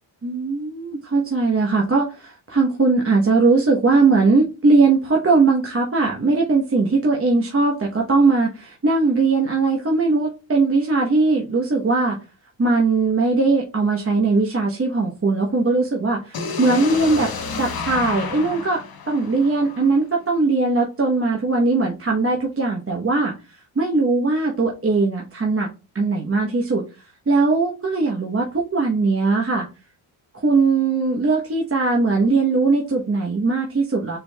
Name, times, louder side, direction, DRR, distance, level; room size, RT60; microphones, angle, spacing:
voice 1, 0.2-12.2 12.6-17.3 17.6-18.8 19.1-23.3 23.8-25.7 25.9-26.8 27.3-29.7 30.4-34.2, right 3 dB, 30° right, -1 dB, 0.9 m, -19 dB
sound 1, 16.3-20.2, left 4 dB, 45° left, 1.0 m, -30 dB
6.8 x 3.0 x 2.2 m, 0.31 s
cardioid pair, 60°, 49 cm